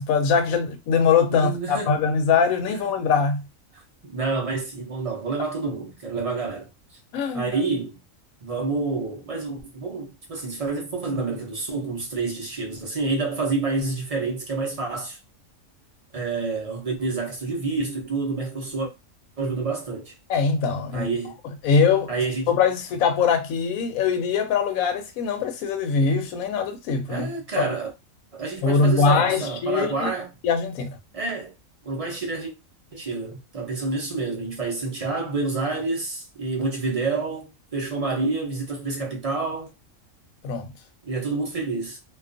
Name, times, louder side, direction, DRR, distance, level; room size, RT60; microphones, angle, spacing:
voice 1, 0.0-3.4 7.1-7.5 20.3-21.1 21.6-22.1 22.5-27.3 27.6-27.7 28.6-30.1 30.4-31.0 40.4-40.7, left 5 dB, 85° left, 1.0 m, -22 dB
voice 2, 1.3-2.0 2.7-2.8 3.7-6.7 7.3-8.0 8.4-15.2 16.1-18.9 19.4-20.2 20.9-21.4 22.1-22.5 27.1-27.9 28.3-30.3 31.1-31.5 31.8-32.5 32.9-39.7 41.0-42.0, right 3 dB, 45° right, 0.4 m, -28 dB
2.4 x 2.3 x 2.4 m
omnidirectional pair, 1.4 m